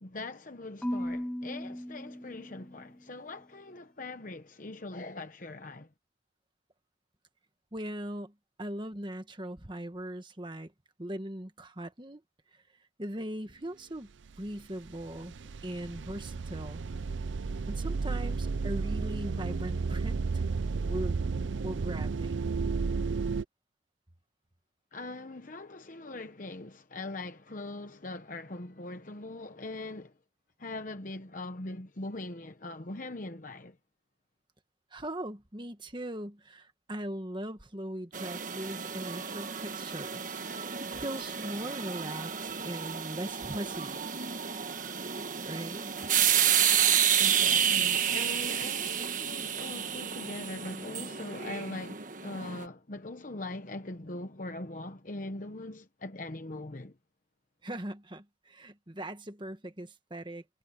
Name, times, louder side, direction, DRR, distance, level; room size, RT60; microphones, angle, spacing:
voice 1, 0.0-5.9 24.9-30.1 30.6-33.7 47.2-56.9, left 2 dB, 40° left, 1.0 m, -41 dB
Marimba xylophone / Wood, 0.8-3.0, equal, 5° left, 0.4 m, -37 dB
voice 2, 7.7-8.3 8.6-10.7 11.0-12.2 12.5-12.6 13.0-14.1 14.4-15.3 15.6-16.8 17.7-20.4 20.9-21.2 21.6-22.4 34.9-44.0 45.4-45.9 57.6-60.4, right 1 dB, 25° right, 1.5 m, -39 dB
sound 1, 14.4-14.6 14.8-23.4, right 4 dB, 70° right, 0.5 m, -32 dB
sound 2, 38.1-52.6, right 9 dB, 45° right, 1.4 m, -30 dB
head